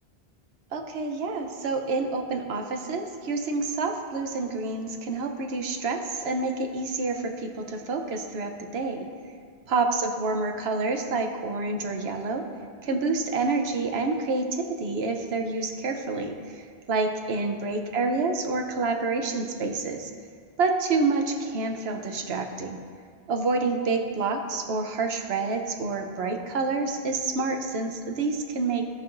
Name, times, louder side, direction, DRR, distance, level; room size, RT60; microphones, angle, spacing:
voice 1, 0.7-9.1 9.7-12.4 12.8-20.1 20.6-22.8 23.3-28.8, right 3 dB, 80° right, 4 dB, 1.0 m, -28 dB
16.5 x 5.6 x 2.5 m, 2.1 s
omnidirectional pair, 1.1 m